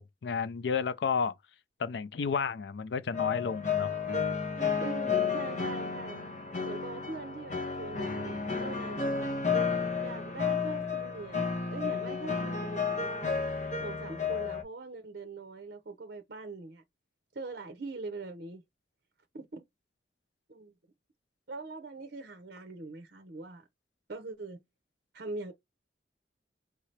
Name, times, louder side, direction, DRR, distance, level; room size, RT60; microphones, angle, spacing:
voice 1, 0.0-1.3 1.8-3.9, left 6 dB, 75° left, 0.4 m, -31 dB
sound 1, 3.1-14.6, left 5 dB, 45° left, 0.9 m, -32 dB
voice 2, 4.8-6.2 6.6-9.4 10.0-13.4 13.8-16.8 17.3-18.6 19.3-19.6 20.5-20.7 21.5-23.7 24.1-24.6 25.1-25.5, right 3 dB, 60° right, 0.7 m, -42 dB
4.7 x 2.8 x 3.2 m
head